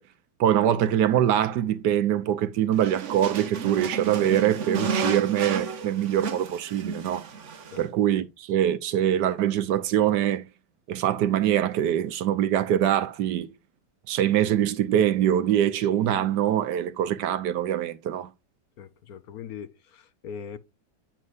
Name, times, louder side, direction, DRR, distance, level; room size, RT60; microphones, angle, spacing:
voice 1, 0.4-7.3 7.8-10.5 10.9-13.5 14.1-18.3, right 10 dB, 75° right, 1.3 m, -23 dB
sound 1, 2.7-7.9, right 5 dB, 50° right, 1.1 m, -32 dB
voice 2, 18.8-20.6, left 7 dB, 65° left, 1.1 m, -40 dB
9.3 x 7.5 x 2.5 m
omnidirectional pair, 1.9 m